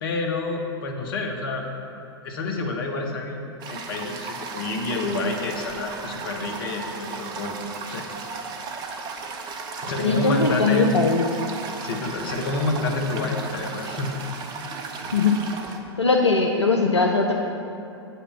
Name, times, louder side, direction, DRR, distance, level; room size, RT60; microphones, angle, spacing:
voice 1, 0.0-1.6 2.2-8.0 9.8-11.0 11.8-14.2, left 3 dB, 55° left, 3 dB, 1.1 m, -28 dB
Toilet flush, 3.6-15.8, right 4 dB, 30° right, 0.7 m, -35 dB
voice 2, 10.0-11.2 15.1-15.4 16.0-17.4, left 3 dB, 85° left, 2 dB, 0.6 m, -20 dB
8.4 x 5.5 x 5.8 m, 2.5 s
figure-of-eight pair, 95°, 14 cm